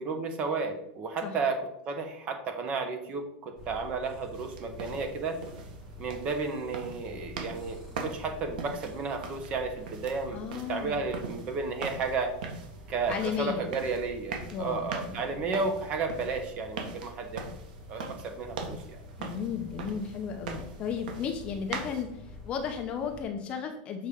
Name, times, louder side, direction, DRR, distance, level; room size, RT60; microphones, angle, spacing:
voice 1, 0.0-5.4 6.0-10.4 10.7-12.3 12.9-17.4 17.9-19.0, right 4 dB, 25° right, 6 dB, 1.0 m, -33 dB
sound 1, 3.6-23.2, left 2 dB, 10° right, 2.0 m, -47 dB
sound 2, 4.3-22.0, right 4 dB, 80° right, 1.6 m, -42 dB
voice 2, 10.3-11.0 11.4-11.5 13.1-13.7 14.5-15.4 19.2-24.1, left 7 dB, 25° left, 5 dB, 0.6 m, -34 dB
6.8 x 4.3 x 5.0 m, 0.75 s
supercardioid pair, 175°, 5 cm